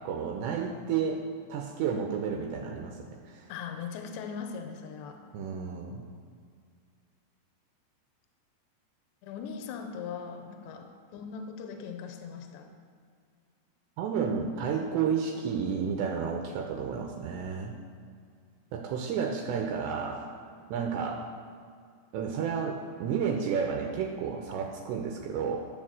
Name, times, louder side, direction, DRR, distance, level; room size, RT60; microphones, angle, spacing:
voice 1, 0.1-1.2 1.5-3.0 3.3-3.4 5.3-6.0 14.0-17.7 18.7-20.3 20.7-21.3 22.1-25.7, right 6 dB, 80° right, 1 dB, 2.9 m, -31 dB
voice 2, 3.5-5.2 9.2-12.7, left 6 dB, 80° left, 6 dB, 2.7 m, -40 dB
12.5 x 4.6 x 7.4 m, 2.2 s
omnidirectional pair, 5.2 m